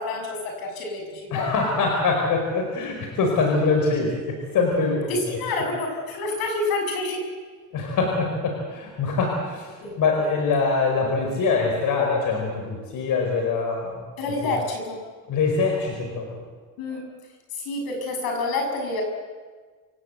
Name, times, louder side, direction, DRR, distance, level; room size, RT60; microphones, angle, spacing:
voice 1, 0.0-1.5 5.1-7.2 9.8-10.3 14.2-15.0 16.8-17.0 17.5-19.0, left 2 dB, 85° left, 2 dB, 7.2 m, -28 dB
voice 2, 1.3-5.2 7.7-14.0 14.4-14.5 15.3-16.4, left 4 dB, 65° left, 2 dB, 5.0 m, -24 dB
28.0 x 17.0 x 8.1 m, 1.5 s
cardioid pair, 120°, 35 cm